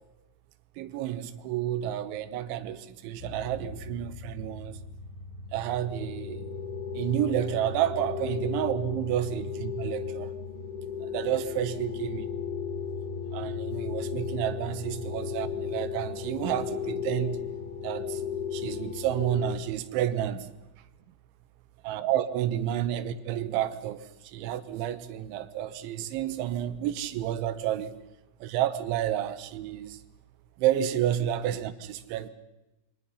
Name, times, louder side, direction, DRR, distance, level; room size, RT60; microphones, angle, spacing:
voice 1, 0.8-4.8 5.5-6.5 7.0-10.3 11.1-12.3 13.3-17.4 17.8-18.2 18.5-20.5 21.9-24.0 24.3-28.0 28.4-30.0 30.6-32.3, right 11 dB, 90° right, 3.5 m, -30 dB
sound 1, 3.2-19.5, left 6 dB, 65° left, 3.8 m, -35 dB
28.0 x 23.5 x 5.6 m
omnidirectional pair, 5.2 m